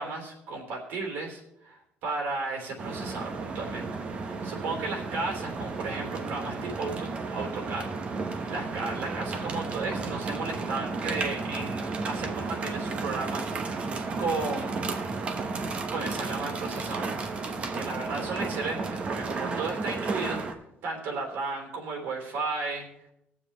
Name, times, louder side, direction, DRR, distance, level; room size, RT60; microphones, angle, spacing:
voice 1, 0.0-7.9 8.1-15.0 15.9-20.4 20.8-22.9, right 3 dB, 75° right, 1 dB, 3.2 m, -34 dB
sound 1, 2.8-20.5, right 4 dB, 35° right, 1.0 m, -33 dB
20.5 x 7.3 x 3.2 m, 0.81 s
cardioid pair, 150°, 4 cm